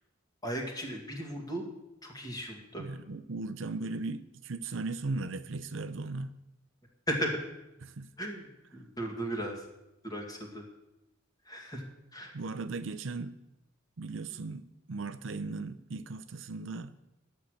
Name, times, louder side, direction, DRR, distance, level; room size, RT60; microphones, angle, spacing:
voice 1, 0.4-1.7 2.0-2.9 7.1-7.4 8.2-8.5 8.7-9.6 10.0-10.6 11.5-11.8 12.1-12.3, right 1 dB, 20° left, 2.2 m, -36 dB
voice 2, 2.8-6.4 7.8-8.1 12.3-13.4 14.0-16.9, right 3 dB, 70° right, 0.6 m, -37 dB
12.0 x 6.6 x 7.9 m
head